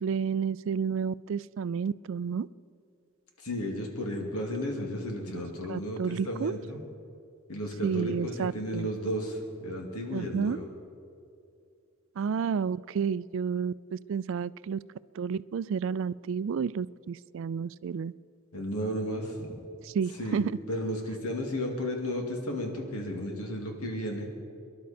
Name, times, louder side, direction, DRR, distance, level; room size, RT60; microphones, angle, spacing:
voice 1, 0.0-2.5 5.7-6.5 7.8-8.9 10.1-10.6 12.2-14.8 15.2-18.1 19.8-20.5, right 6 dB, 60° right, 18 dB, 0.3 m, -31 dB
voice 2, 3.4-6.8 7.5-10.6 18.5-19.7 20.2-20.4 20.7-24.3, equal, 85° left, 1 dB, 2.3 m, -33 dB
24.0 x 11.5 x 4.3 m, 2.5 s
head